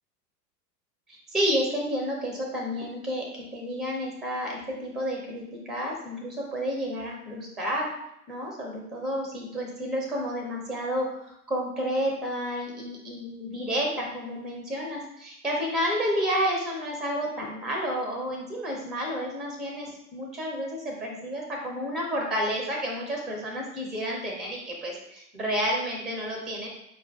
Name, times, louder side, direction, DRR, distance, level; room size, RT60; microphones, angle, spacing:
voice 1, 1.1-7.9 8.3-26.7, equal, ahead, 0 dB, 0.4 m, -30 dB
4.4 x 2.5 x 3.3 m, 0.79 s
figure-of-eight pair, 90°, 46 cm